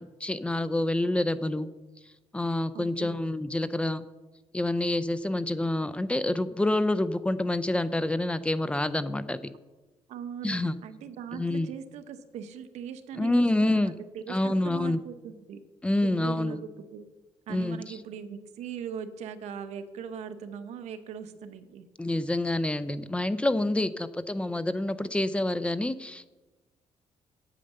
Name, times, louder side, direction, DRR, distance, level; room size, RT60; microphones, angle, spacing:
voice 1, 0.0-1.7 2.3-4.1 4.5-9.4 10.4-10.8 11.3-11.7 13.2-13.9 14.3-15.0 15.8-16.6 17.5-18.0 22.0-26.3, left 1 dB, 10° left, 13 dB, 0.4 m, -27 dB
voice 2, 2.7-3.2 10.1-15.6 16.0-17.0 17.5-21.9, right 7 dB, 90° right, 10 dB, 0.9 m, -40 dB
9.0 x 8.7 x 6.6 m, 1.2 s
cardioid pair, 135°, 11 cm